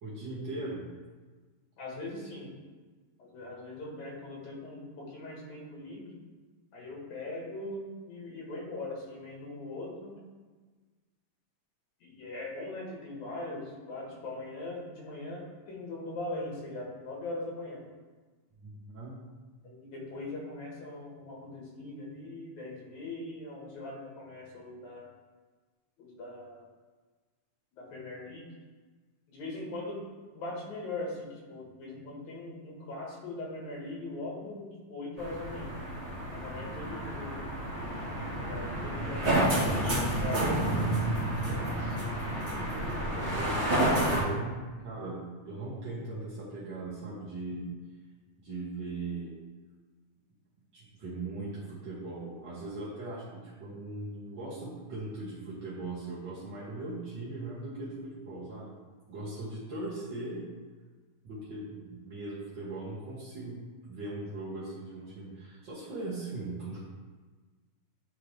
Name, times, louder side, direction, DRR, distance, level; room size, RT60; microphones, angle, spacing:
voice 1, 0.0-0.9 18.6-19.2 43.2-43.6 44.1-47.6 48.4-49.3 50.7-58.7 59.1-60.4 61.2-66.8, right 2 dB, 50° right, -9 dB, 1.6 m, -39 dB
voice 2, 1.8-2.5 3.2-6.3 6.7-10.2 12.0-17.8 19.6-25.1 26.0-26.6 27.7-28.5 29.3-30.0 30.3-35.7 36.3-37.5 38.4-40.5 41.4-42.0 43.0-43.5, left 2 dB, 75° left, -2 dB, 2.7 m, -41 dB
sound 1, 35.2-44.2, right 1 dB, 30° right, 1.4 m, -30 dB
10.0 x 3.7 x 3.2 m, 1.4 s
omnidirectional pair, 3.5 m